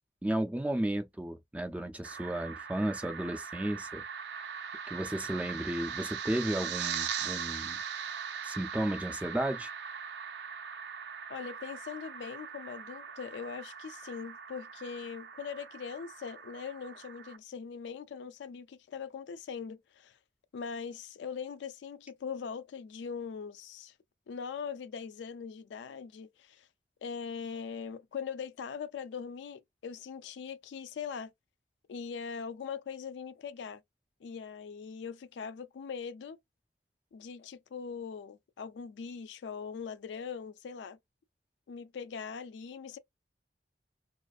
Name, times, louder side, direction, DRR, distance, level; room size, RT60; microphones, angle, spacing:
voice 1, 0.2-4.0 4.9-7.8 8.4-9.7, right 1 dB, 10° right, 0.3 m, -33 dB
sound 1, 2.0-17.4, right 7 dB, 75° right, 0.4 m, -40 dB
voice 2, 11.3-20.2 20.5-23.9 24.3-26.7 27.0-31.3 31.9-33.8 34.2-36.4 37.1-41.0 41.7-43.0, left 6 dB, 85° left, 0.3 m, -41 dB
2.4 x 2.4 x 2.3 m
head